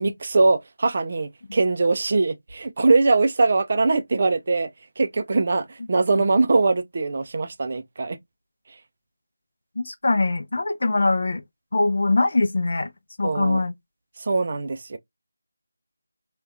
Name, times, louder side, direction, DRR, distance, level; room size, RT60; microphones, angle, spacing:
voice 1, 0.0-4.7 5.0-8.2 13.2-13.6 14.2-15.0, right 3 dB, 40° right, 0.4 m, -22 dB
voice 2, 9.8-11.4 11.7-12.9 13.2-13.7, left 2 dB, 50° left, 0.4 m, -22 dB
3.4 x 2.2 x 2.4 m
figure-of-eight pair, 165°, 0 cm